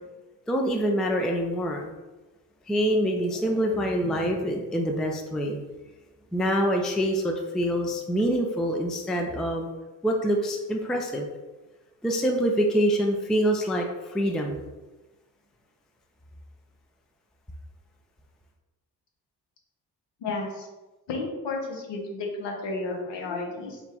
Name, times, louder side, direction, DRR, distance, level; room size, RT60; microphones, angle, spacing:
voice 1, 0.5-1.9 2.7-5.6 6.3-9.7 10.0-11.3 12.0-14.6, equal, ahead, 2 dB, 0.4 m, -25 dB
voice 2, 20.2-20.7 21.1-23.8, left 3 dB, 60° left, 0 dB, 1.0 m, -32 dB
3.9 x 2.4 x 3.5 m, 1.1 s
hypercardioid pair, 40°, 48 cm